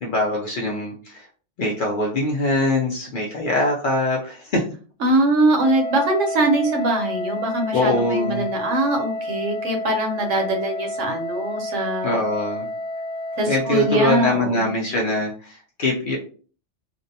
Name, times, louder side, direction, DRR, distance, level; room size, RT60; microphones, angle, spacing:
voice 1, 0.0-1.2 1.6-4.6 7.7-8.5 12.0-12.7 13.4-16.2, left 2 dB, 60° left, -2 dB, 0.5 m, -23 dB
voice 2, 5.0-12.1 13.4-14.7, right 2 dB, 75° right, 2 dB, 1.0 m, -22 dB
Wind instrument woodwind instrument, 5.6-14.5, left 1 dB, 75° left, 0.9 m, -30 dB
2.6 x 2.0 x 2.6 m, 0.41 s
omnidirectional pair, 1.3 m